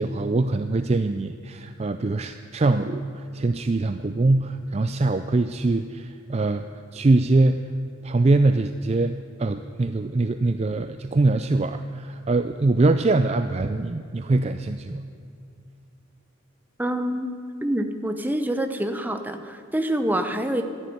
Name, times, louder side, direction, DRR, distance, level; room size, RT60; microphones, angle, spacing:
voice 1, 0.0-6.7 6.9-7.7 8.0-15.0, right 2 dB, 30° right, 9 dB, 0.4 m, -23 dB
voice 2, 16.8-17.3 17.6-20.6, right 1 dB, 10° right, 7 dB, 0.8 m, -26 dB
13.0 x 11.5 x 9.4 m, 2.6 s
head